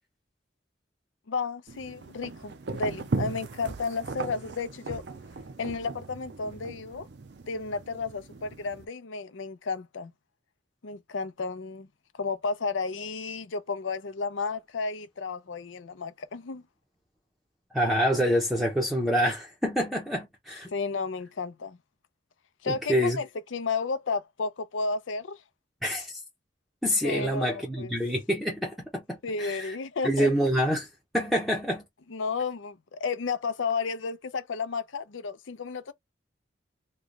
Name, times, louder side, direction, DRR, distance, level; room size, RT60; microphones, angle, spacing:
voice 1, 1.3-5.0 5.6-7.1 7.5-10.1 10.8-11.9 12.2-16.6 20.7-21.8 22.6-25.4 27.0-27.9 29.2-30.3 32.1-35.9, left 4 dB, 80° left, 0.6 m, -32 dB
sound 1, 1.7-8.8, right 3 dB, 60° right, 0.5 m, -38 dB
voice 2, 17.7-20.7 22.7-23.2 25.8-26.2 26.8-29.8 30.0-30.9 31.1-31.8, equal, ahead, 0.7 m, -27 dB
3.2 x 2.2 x 3.9 m
head